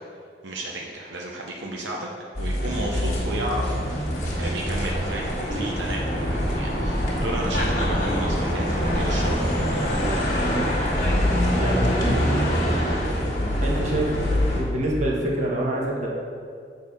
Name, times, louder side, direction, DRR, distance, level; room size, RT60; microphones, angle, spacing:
voice 1, 0.4-2.1 2.4-9.9, right 1 dB, 80° right, -1 dB, 0.7 m, -33 dB
sound 1, 2.3-14.6, equal, 45° left, 1.5 m, -24 dB
voice 2, 10.4-10.7 11.6-12.7 13.6-16.1, right 1 dB, 40° right, -3 dB, 1.3 m, -27 dB
6.9 x 4.1 x 5.4 m, 2.3 s
head